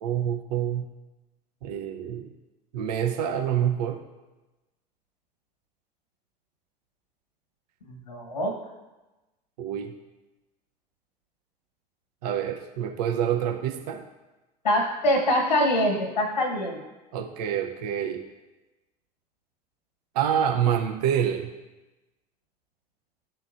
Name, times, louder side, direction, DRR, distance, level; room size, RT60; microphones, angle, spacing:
voice 1, 0.0-0.9 1.6-2.3 2.7-4.0 9.6-9.9 12.2-14.0 17.1-18.2 20.1-21.5, right 9 dB, 70° right, 3 dB, 0.6 m, -27 dB
voice 2, 7.8-8.6 14.6-16.8, equal, 85° left, 3 dB, 1.1 m, -24 dB
11.5 x 3.9 x 2.5 m, 1.1 s
figure-of-eight pair, 70°, 21 cm